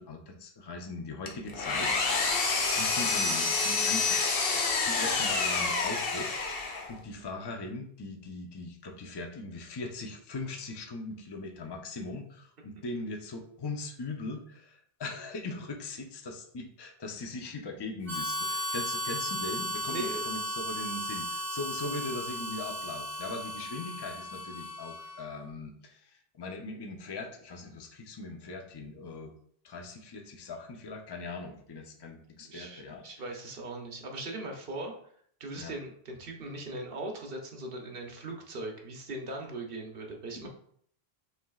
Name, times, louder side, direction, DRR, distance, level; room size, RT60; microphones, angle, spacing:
voice 1, 0.0-6.6 6.9-29.3 29.6-33.0 35.6-35.7, left 2 dB, 30° left, 2 dB, 0.5 m, -40 dB
Engine, 1.3-7.0, left 4 dB, 65° left, 1.0 m, -28 dB
Harmonica, 18.1-25.3, equal, 40° right, 1.7 m, -35 dB
voice 2, 19.9-20.3 32.4-34.9 35.4-40.5, right 2 dB, 60° right, 2 dB, 1.0 m, -39 dB
5.8 x 3.3 x 2.3 m, 0.62 s
omnidirectional pair, 1.1 m